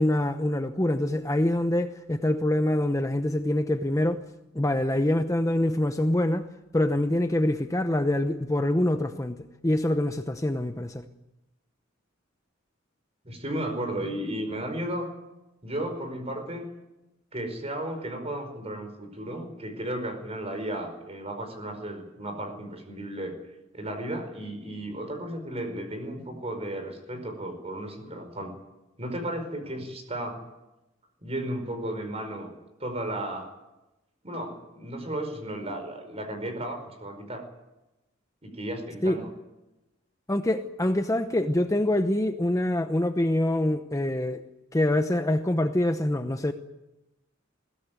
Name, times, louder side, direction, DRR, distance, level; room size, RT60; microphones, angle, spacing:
voice 1, 0.0-4.2 4.5-6.5 6.7-11.0 39.0-39.2 40.3-44.4 44.7-46.5, left 1 dB, 15° left, 0.8 m, -25 dB
voice 2, 13.2-15.1 15.6-16.7 17.3-23.3 23.7-28.5 29.0-30.4 31.2-32.5 32.8-33.5 34.2-37.5 38.4-39.3, right 1 dB, 30° right, 5.0 m, -34 dB
21.5 x 16.5 x 9.4 m
head